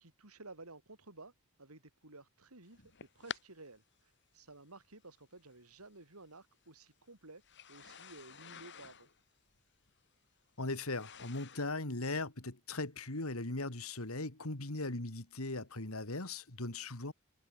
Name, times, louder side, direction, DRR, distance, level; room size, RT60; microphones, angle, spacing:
voice 1, 0.0-1.3 1.6-2.8 3.1-7.4 7.7-9.1, right 2 dB, 90° right, 5.0 m, -54 dB
sound 1, 2.7-3.4 4.4-4.5 5.7-5.8 7.4-11.8, left 7 dB, 55° left, 7.2 m, -50 dB
voice 2, 10.6-17.1, left 2 dB, 75° left, 2.8 m, -39 dB
head